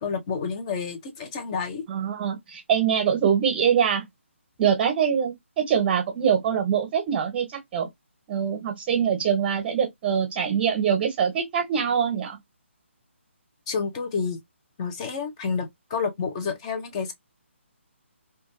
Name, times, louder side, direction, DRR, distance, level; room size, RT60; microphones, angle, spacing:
voice 1, 0.0-1.8 13.7-14.4 14.8-17.1, left 5 dB, 25° left, 0.6 m, -29 dB
voice 2, 1.9-4.0 4.6-5.3 5.6-7.5 7.7-7.9 8.3-12.4, right 8 dB, 25° right, 0.7 m, -23 dB
2.3 x 2.3 x 3.1 m
figure-of-eight pair, 145°, 7 cm